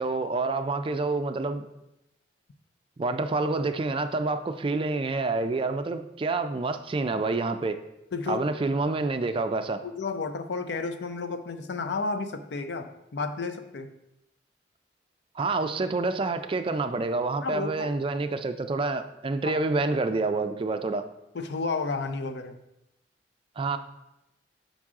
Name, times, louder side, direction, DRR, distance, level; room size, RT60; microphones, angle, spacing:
voice 1, 0.0-1.7 3.0-7.8 8.3-9.8 15.4-21.1 23.6-23.8, right 3 dB, 30° right, 8 dB, 0.4 m, -28 dB
voice 2, 8.1-8.4 9.8-13.9 17.4-17.9 19.4-19.6 21.3-22.6, left 4 dB, 70° left, 9 dB, 0.5 m, -32 dB
6.1 x 5.3 x 3.6 m, 0.89 s
head